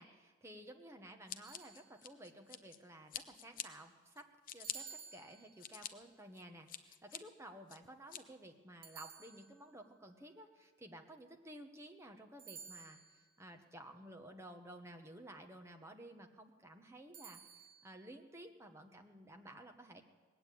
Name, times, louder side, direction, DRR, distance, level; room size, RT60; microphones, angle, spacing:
voice 1, 0.0-20.0, right 1 dB, 15° right, 4 dB, 1.0 m, -54 dB
Scissors, 1.3-2.8 3.1-3.7 4.2-4.8 5.3-5.9 6.4-7.2 7.7-8.2, left 10 dB, 40° left, 0.7 m, -45 dB
Entrance Bell, 1.4-2.3 4.6-5.9 8.8-9.9 12.4-13.4 17.1-17.9, right 7 dB, 45° right, 1.3 m, -55 dB
19.5 x 9.0 x 8.3 m, 1.5 s
head